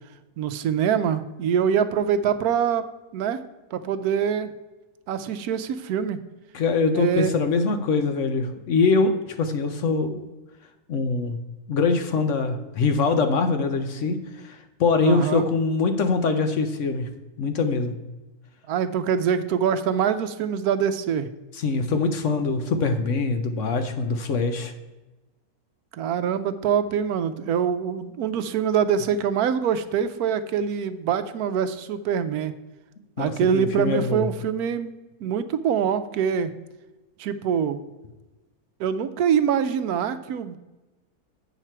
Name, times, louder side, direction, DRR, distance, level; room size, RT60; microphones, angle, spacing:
voice 1, 0.4-2.9 3.1-3.4 3.7-4.5 5.1-6.2 6.9-7.3 15.0-15.5 18.7-21.3 25.9-32.5 33.2-34.9 35.2-36.5 37.2-37.8 38.8-40.6, right 8 dB, 75° right, 11 dB, 1.1 m, -24 dB
voice 2, 6.5-9.1 9.4-10.2 10.9-11.4 11.7-14.2 14.4-17.1 17.4-17.9 21.6-24.7 33.2-34.3, left 4 dB, 60° left, 7 dB, 0.9 m, -23 dB
8.1 x 6.0 x 4.4 m, 1.1 s
omnidirectional pair, 1.6 m